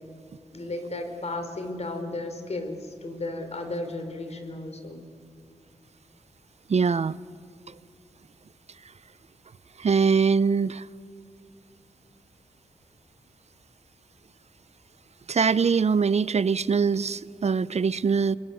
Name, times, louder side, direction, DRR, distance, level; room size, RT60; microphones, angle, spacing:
voice 1, 0.5-5.0, left 2 dB, 55° left, 7 dB, 4.1 m, -34 dB
voice 2, 6.7-7.2 7.7-7.8 9.8-10.9 15.3-18.4, right 5 dB, 55° right, 18 dB, 0.6 m, -23 dB
26.5 x 21.5 x 9.5 m, 2.4 s
cardioid pair, 50°, 13 cm